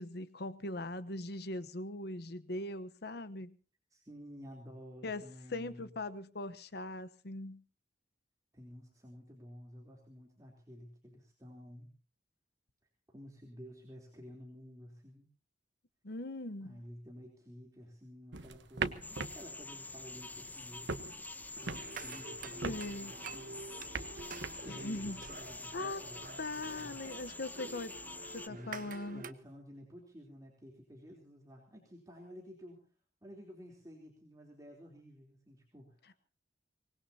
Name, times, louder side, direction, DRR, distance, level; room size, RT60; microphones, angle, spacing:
voice 1, 0.0-3.5 5.0-5.2 5.5-7.6 16.0-16.8 22.6-23.1 24.7-25.2 25.7-26.0 26.4-28.0 28.3-29.2, left 2 dB, 65° left, 14 dB, 1.1 m, -40 dB
voice 2, 3.9-5.9 8.5-11.9 13.1-15.3 16.6-20.9 21.6-23.7 24.4-27.0 28.5-32.9 33.2-36.1, equal, 20° right, -1 dB, 3.6 m, -52 dB
sound 1, 18.3-27.4, right 4 dB, 85° right, 1.2 m, -44 dB
sound 2, 19.0-28.5, left 2 dB, 10° left, 0.8 m, -47 dB
sound 3, 21.6-29.3, right 4 dB, 50° right, 1.0 m, -48 dB
24.5 x 19.5 x 2.9 m, 0.36 s
head